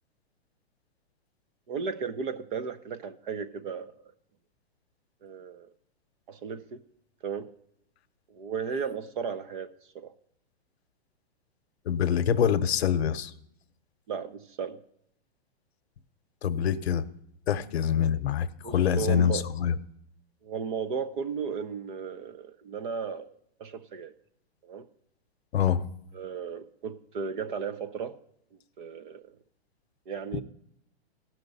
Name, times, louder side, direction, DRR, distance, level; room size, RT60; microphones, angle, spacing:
voice 1, 1.7-4.1 5.2-5.7 6.3-6.8 7.2-7.5 8.3-10.1 14.1-14.8 18.6-19.5 20.4-24.1 24.6-24.9 26.1-28.2 28.8-29.3 30.1-30.4, right 6 dB, 50° right, 12 dB, 0.8 m, -35 dB
voice 2, 11.9-13.3 16.4-17.1 17.5-19.7 25.5-25.9, left 8 dB, 75° left, 12 dB, 0.8 m, -25 dB
16.5 x 6.1 x 4.0 m, 0.73 s
hypercardioid pair, 155°, 32 cm